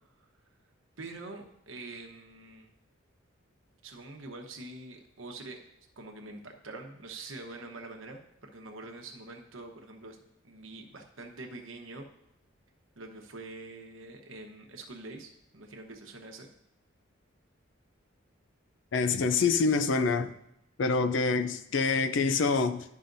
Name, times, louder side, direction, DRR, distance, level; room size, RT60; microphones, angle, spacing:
voice 1, 1.0-2.7 3.8-5.6 6.0-10.2 10.4-12.0 13.0-16.5, right 2 dB, 85° right, 1.0 m, -45 dB
voice 2, 18.9-20.4 20.8-22.8, left 4 dB, 65° left, 0.4 m, -26 dB
11.5 x 5.6 x 2.6 m
head